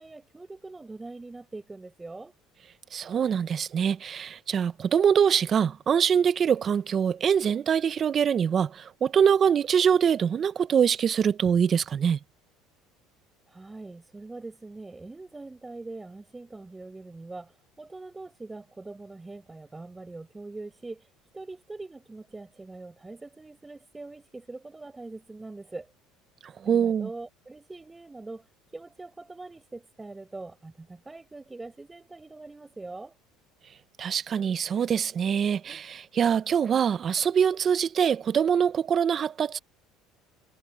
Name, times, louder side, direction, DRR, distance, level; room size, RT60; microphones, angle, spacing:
voice 1, 0.0-2.3 13.5-25.9 26.6-33.2, right 3 dB, 15° right, 8.0 m, -43 dB
voice 2, 2.9-12.2 26.4-27.1 34.0-39.6, right 7 dB, 40° right, 1.0 m, -24 dB
supercardioid pair, 105°, 0 cm